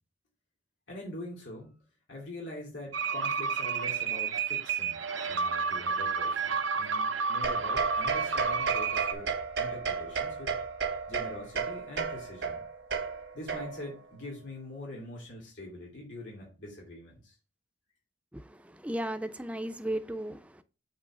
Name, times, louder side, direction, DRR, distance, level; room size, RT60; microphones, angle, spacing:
voice 1, 0.9-1.8 2.1-5.0 5.3-12.6 13.3-17.4, left 1 dB, 85° left, 2.6 m, -44 dB
sound 1, 2.9-9.1, right 5 dB, 90° right, 0.8 m, -30 dB
sound 2, 7.4-14.0, right 5 dB, 70° right, 1.1 m, -34 dB
voice 2, 18.3-20.6, right 1 dB, 5° right, 0.5 m, -35 dB
7.7 x 3.3 x 4.8 m
head